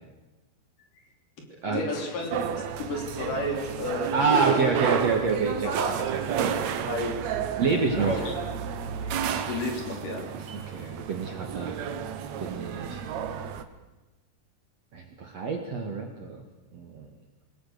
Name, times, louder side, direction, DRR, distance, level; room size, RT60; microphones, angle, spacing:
voice 1, 1.7-2.3 2.8-4.1 4.6-4.7 5.6-6.0 6.4-6.6 6.9-7.1 7.7-8.3 9.0-10.2, left 2 dB, 50° left, 1 dB, 4.7 m, -32 dB
sound 1, 2.3-13.6, right 8 dB, 70° right, 1.7 m, -31 dB
voice 2, 4.1-6.5 7.6-8.2 10.5-11.8 12.4-13.0 14.9-16.4 16.7-17.1, right 4 dB, 50° right, 2 dB, 2.5 m, -28 dB
27.0 x 20.5 x 6.8 m, 1.1 s
omnidirectional pair, 4.9 m